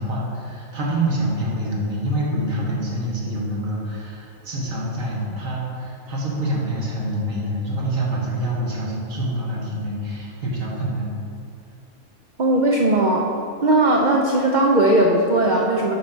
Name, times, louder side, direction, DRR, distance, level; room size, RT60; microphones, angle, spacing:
voice 1, 0.0-11.1, right 1 dB, 65° right, -4 dB, 1.7 m, -26 dB
voice 2, 12.4-13.3 13.6-16.0, right 1 dB, 85° right, 0 dB, 0.4 m, -18 dB
6.5 x 5.3 x 4.4 m, 2.5 s
omnidirectional pair, 1.5 m